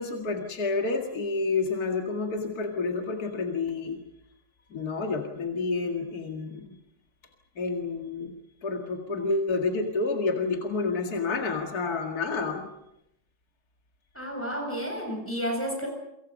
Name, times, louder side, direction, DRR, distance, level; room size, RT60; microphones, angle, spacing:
voice 1, 0.0-4.0 4.7-6.7 7.6-8.3 8.6-12.7, left 3 dB, 55° left, 2 dB, 2.6 m, -29 dB
voice 2, 14.1-15.9, equal, 5° left, 1 dB, 8.0 m, -31 dB
29.0 x 25.5 x 5.4 m, 0.85 s
omnidirectional pair, 1.9 m